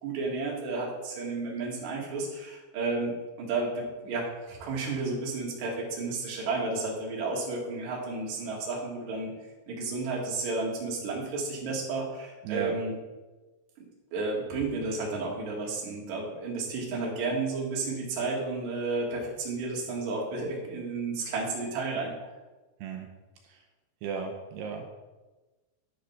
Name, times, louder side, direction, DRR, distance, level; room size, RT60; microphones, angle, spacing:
voice 1, 0.0-9.3 9.7-12.9 14.1-22.1, right 3 dB, 50° right, -3 dB, 2.7 m, -32 dB
voice 2, 12.4-12.7 22.8-23.1 23.4-23.6 24.0-24.9, right 7 dB, 80° right, 3 dB, 2.5 m, -35 dB
10.5 x 5.1 x 5.7 m, 1.2 s
omnidirectional pair, 5.4 m